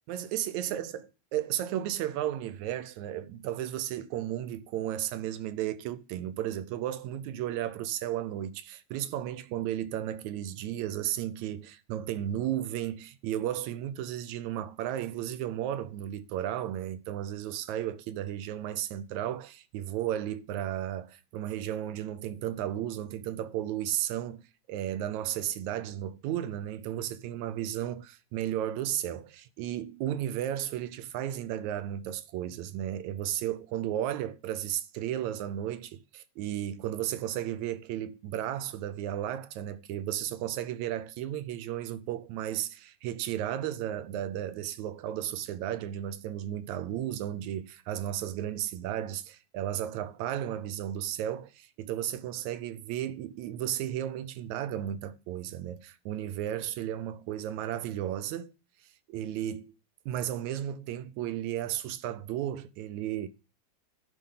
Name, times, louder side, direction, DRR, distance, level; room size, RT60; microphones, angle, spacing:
voice 1, 0.1-1.0 1.3-58.5 59.1-59.7 60.1-63.3, right 11 dB, 80° right, 2.0 m, -34 dB
10.5 x 5.3 x 5.6 m
omnidirectional pair, 3.3 m